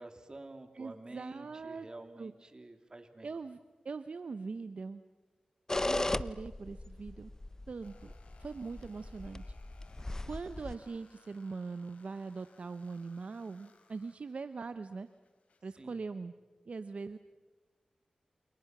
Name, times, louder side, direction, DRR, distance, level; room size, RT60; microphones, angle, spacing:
voice 1, 0.0-3.3 15.8-16.0, right 2 dB, 35° right, 6 dB, 3.0 m, -49 dB
voice 2, 0.7-1.9 2.2-2.3 3.2-3.6 3.8-5.0 5.8-7.3 7.7-8.1 8.4-9.5 10.2-15.1 15.6-16.3 16.7-17.2, right 4 dB, 65° right, 11 dB, 0.8 m, -41 dB
sound 1, 5.7-10.8, left 2 dB, 25° left, 0.7 m, -37 dB
sound 2, 7.8-15.8, left 4 dB, 80° left, 3.1 m, -65 dB
29.5 x 27.5 x 6.0 m, 1.3 s
cardioid pair, 60°, 2 cm